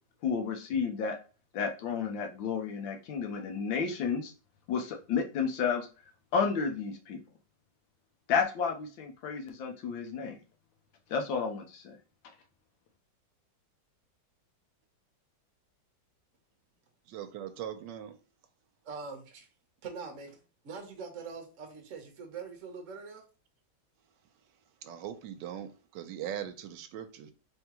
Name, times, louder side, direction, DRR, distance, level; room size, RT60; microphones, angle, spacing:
voice 1, 0.2-1.2 1.5-4.3 4.7-5.9 6.3-7.2 8.3-10.4 11.1-12.0, left 6 dB, 85° left, 1.6 m, -31 dB
voice 2, 17.1-18.2 24.8-27.3, right 10 dB, 75° right, 1.2 m, -40 dB
voice 3, 18.8-19.5 19.8-20.4 20.6-23.3, right 5 dB, 55° right, 0.9 m, -43 dB
3.6 x 3.6 x 2.9 m
omnidirectional pair, 2.0 m